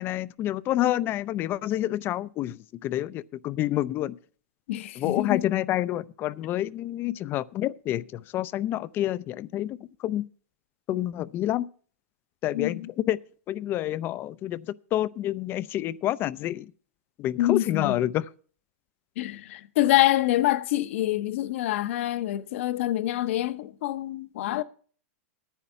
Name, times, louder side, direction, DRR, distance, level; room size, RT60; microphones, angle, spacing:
voice 1, 0.0-4.2 5.0-9.8 10.0-10.2 10.9-11.6 12.4-13.2 13.5-16.7 17.2-18.3, left 13 dB, 30° left, 0.4 m, -28 dB
voice 2, 4.7-5.5 12.5-12.9 17.4-18.0 19.2-24.6, left 15 dB, 60° left, 0.8 m, -26 dB
10.0 x 9.0 x 5.6 m
hypercardioid pair, 130°, 8 cm